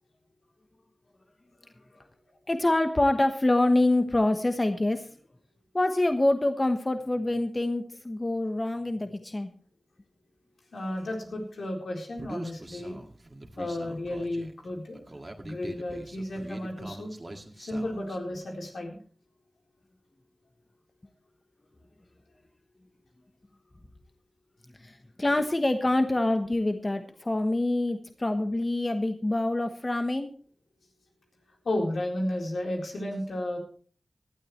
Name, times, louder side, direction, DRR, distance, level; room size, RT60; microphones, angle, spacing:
voice 1, 2.5-5.1 5.7-9.5 24.8-30.3, left 1 dB, 30° left, 7 dB, 1.1 m, -26 dB
voice 2, 10.7-13.0 13.6-15.1 15.4-17.1 17.6-19.0 31.6-33.6, left 1 dB, 85° left, 0 dB, 4.0 m, -33 dB
Human voice, 12.2-18.2, right 1 dB, 35° right, 2.0 m, -43 dB
19.0 x 12.0 x 3.2 m, 0.43 s
wide cardioid pair, 60°, 0 cm